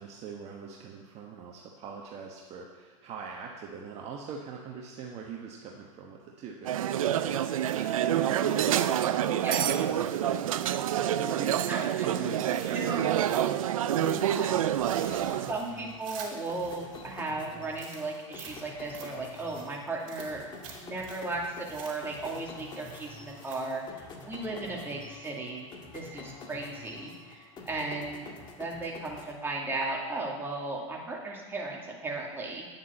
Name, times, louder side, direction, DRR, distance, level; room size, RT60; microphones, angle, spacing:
voice 1, 0.0-7.4 7.7-14.7 15.1-15.5 24.5-24.6, right 6 dB, 40° right, 0 dB, 1.2 m, -42 dB
sound 1, 6.7-15.5, right 11 dB, 85° right, 0.6 m, -27 dB
sound 2, 7.5-11.7 12.2-13.6 13.9-17.2 17.7-23.9, right 6 dB, 60° right, 4.2 m, -50 dB
voice 2, 9.3-9.7 11.7-12.1 12.7-13.1 14.3-14.5 15.5-20.4 20.7-25.7 25.9-28.3 28.6-32.7, right 2 dB, 15° right, -3 dB, 2.5 m, -36 dB
sound 3, 14.6-29.9, left 3 dB, 25° left, 1.8 m, -48 dB
9.8 x 7.3 x 7.2 m, 1.4 s
hypercardioid pair, 120°, 17 cm